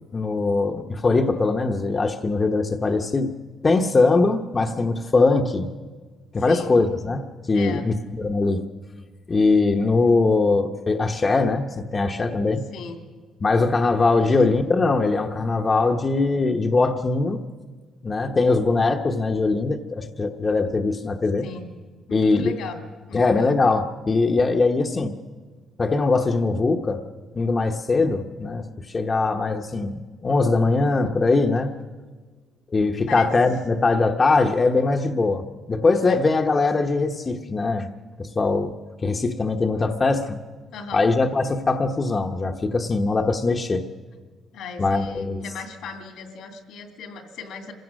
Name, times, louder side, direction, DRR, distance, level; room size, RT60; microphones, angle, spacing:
voice 1, 0.1-3.3 3.6-5.7 6.3-8.6 9.3-12.7 13.4-17.4 18.0-21.4 22.1-22.5 23.1-25.1 25.8-27.0 27.3-31.7 32.7-37.9 38.2-38.7 39.0-40.4 40.9-43.8 44.8-45.4, left 3 dB, 30° left, 4 dB, 1.0 m, -21 dB
voice 2, 6.5-6.8 7.5-7.9 12.7-13.0 14.3-14.4 21.4-21.7 22.1-22.7 23.1-23.5 33.1-33.3 36.1-36.2 40.7-41.1 44.5-47.7, left 4 dB, 85° left, 6 dB, 2.6 m, -37 dB
26.0 x 16.0 x 6.4 m, 1.4 s
cardioid pair, 90°, 0 cm